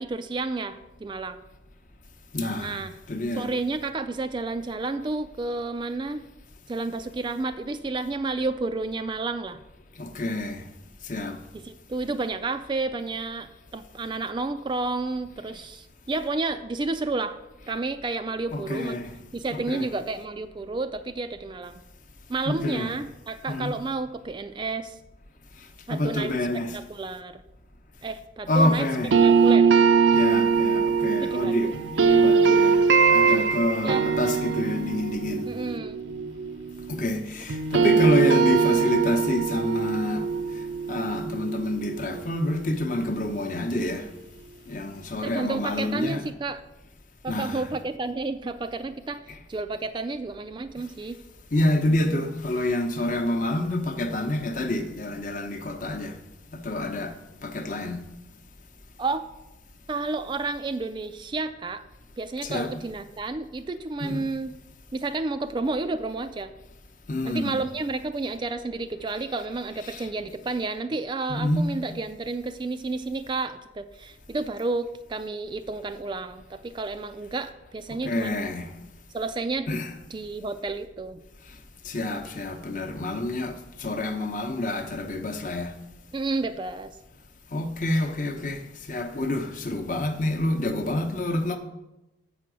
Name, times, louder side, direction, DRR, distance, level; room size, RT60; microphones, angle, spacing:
voice 1, 0.0-1.4 2.6-2.9 3.4-6.2 6.7-9.6 11.5-17.4 17.7-19.0 19.3-21.8 22.3-25.0 25.9-26.3 26.7-27.4 28.0-28.9 29.2-29.7 31.2-31.8 33.2-34.1 35.4-36.0 45.2-46.6 47.2-51.2 59.0-59.3 59.9-61.8 62.2-64.5 64.9-66.5 67.2-78.5 79.1-79.7 80.1-81.2 86.1-86.9, right 3 dB, 25° right, 0.3 m, -31 dB
voice 2, 2.3-3.4 10.0-10.6 11.0-11.4 18.5-19.0 19.7-19.8 22.5-22.9 23.5-23.7 25.9-26.8 28.5-29.1 30.1-35.5 36.9-40.3 40.9-44.1 44.7-46.2 47.3-47.6 51.5-56.2 56.5-57.1 57.4-58.0 62.4-62.7 64.0-64.2 67.1-67.6 69.9-70.0 71.3-71.6 78.0-78.7 79.7-79.9 81.8-85.7 87.5-88.6 88.9-91.6, left 1 dB, 45° left, 0.8 m, -27 dB
sound 1, 29.1-37.2 37.5-42.4, right 5 dB, 75° right, 0.5 m, -22 dB
7.7 x 5.9 x 6.1 m
head